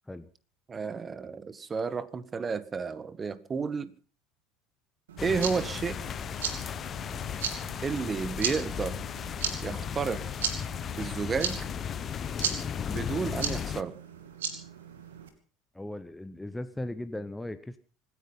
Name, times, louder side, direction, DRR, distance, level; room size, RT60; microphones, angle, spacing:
voice 1, 0.7-3.9 5.2-6.0 7.8-9.0 9.6-10.2 11.0-11.6 12.9-13.9, right 5 dB, 30° right, 1.6 m, -31 dB
sound 1, 5.1-15.3, right 7 dB, 75° right, 2.6 m, -37 dB
sound 2, 5.2-13.8, left 8 dB, 40° left, 1.0 m, -35 dB
voice 2, 15.7-17.8, left 1 dB, 5° left, 1.2 m, -37 dB
25.5 x 10.0 x 5.5 m
hypercardioid pair, 70°, 0 cm